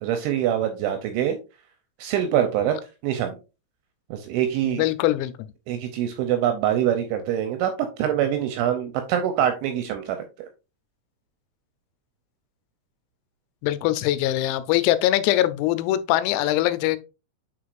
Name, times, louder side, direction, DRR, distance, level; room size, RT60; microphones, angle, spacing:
voice 1, 0.0-1.4 2.0-2.8 3.0-3.4 4.1-4.9 5.7-10.5, right 10 dB, 85° right, 2.7 m, -24 dB
voice 2, 4.7-5.3 13.6-17.0, left 14 dB, 90° left, 3.3 m, -22 dB
8.9 x 4.6 x 2.5 m
omnidirectional pair, 6.0 m